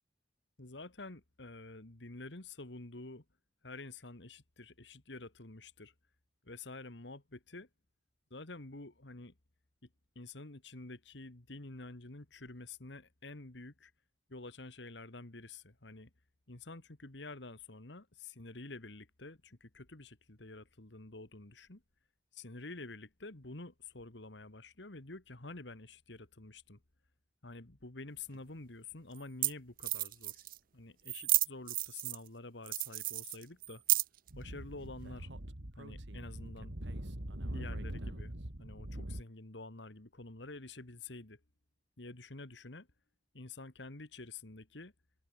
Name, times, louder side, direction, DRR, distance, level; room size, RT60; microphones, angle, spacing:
voice 1, 0.6-3.2 3.6-5.9 6.4-7.7 8.3-9.3 10.2-13.9 14.3-16.1 16.5-21.8 22.3-26.8 27.4-30.4 30.7-33.8 34.3-35.3 35.8-36.7 37.5-38.3 38.6-41.4 42.0-42.9 43.3-44.9, left 2 dB, 70° left, 2.0 m, -48 dB
sound 1, 28.3-28.4 29.2-29.3 29.4-29.5 29.8-30.6 31.1-32.3 32.7-34.3, right 18 dB, 50° right, 0.5 m, -32 dB
Speech / Wind, 34.3-39.2, right 1 dB, 70° right, 2.8 m, -42 dB
open air
head